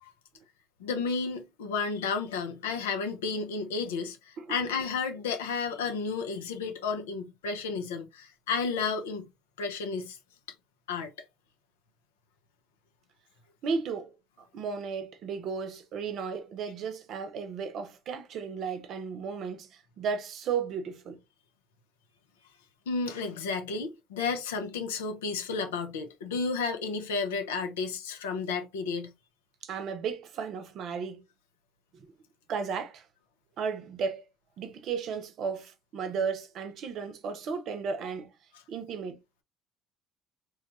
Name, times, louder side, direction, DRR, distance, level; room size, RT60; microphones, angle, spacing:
voice 1, 0.8-9.3 9.6-10.2 10.9-11.1 22.9-29.1, left 4 dB, 85° left, 0.6 m, -32 dB
voice 2, 13.6-21.2 29.6-31.2 32.5-33.1 33.6-34.2 34.6-38.3 38.7-39.2, right 6 dB, 60° right, 0.7 m, -34 dB
3.1 x 2.3 x 3.0 m
hypercardioid pair, 65°, 0 cm